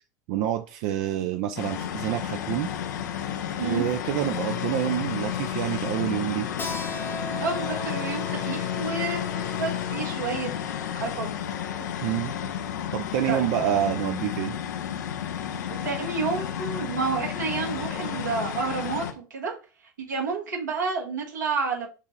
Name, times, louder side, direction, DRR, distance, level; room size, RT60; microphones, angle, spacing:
voice 1, 0.3-2.7 3.6-6.5 12.0-12.3 12.9-14.6, right 12 dB, 60° right, 7 dB, 0.4 m, -27 dB
sound 1, 1.6-19.1, left 9 dB, 80° left, 0.6 m, -31 dB
Keyboard (musical), 6.6-11.9, left 1 dB, 20° left, 0.9 m, -40 dB
voice 2, 7.3-10.5 10.9-11.3 13.3-13.5 15.7-19.5 20.0-21.9, right 4 dB, 85° right, 0 dB, 1.6 m, -30 dB
6.5 x 2.5 x 3.2 m, 0.33 s
hypercardioid pair, 85°, 10 cm